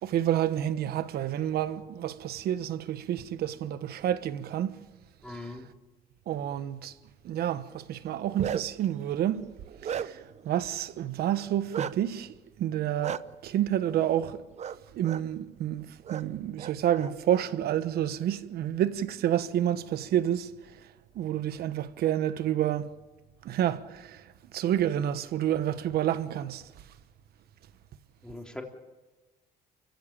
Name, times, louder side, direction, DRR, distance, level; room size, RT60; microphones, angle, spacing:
voice 1, 0.0-4.7 5.3-5.6 6.3-6.9 7.2-9.5 9.8-14.4 14.9-20.8 21.1-22.9 23.4-26.7, right 11 dB, 70° right, 1.3 m, -29 dB
voice 2, 5.2-5.6 28.2-28.6, left 2 dB, 5° left, 3.6 m, -40 dB
Bark, 8.1-8.8 9.4-10.4 11.7-11.9 13.0-13.2 14.6-14.8 15.0-15.2 16.0-16.2 16.6-17.4, right 8 dB, 40° right, 0.8 m, -35 dB
29.0 x 16.0 x 8.8 m
cardioid pair, 110°, 17 cm